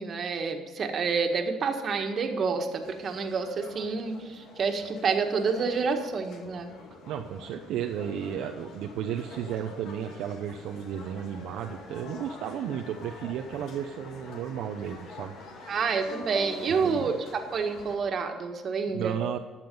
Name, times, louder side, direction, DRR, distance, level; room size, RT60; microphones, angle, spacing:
voice 1, 0.0-6.7 15.7-19.2, right 5 dB, 50° right, 5 dB, 1.7 m, -28 dB
sound 1, 2.8-18.0, left 2 dB, 70° left, 2.2 m, -46 dB
voice 2, 7.1-15.4 16.7-17.1 18.9-19.4, right 9 dB, 75° right, 4 dB, 0.7 m, -33 dB
12.5 x 7.4 x 5.4 m, 1.5 s
supercardioid pair, 80°, 0 cm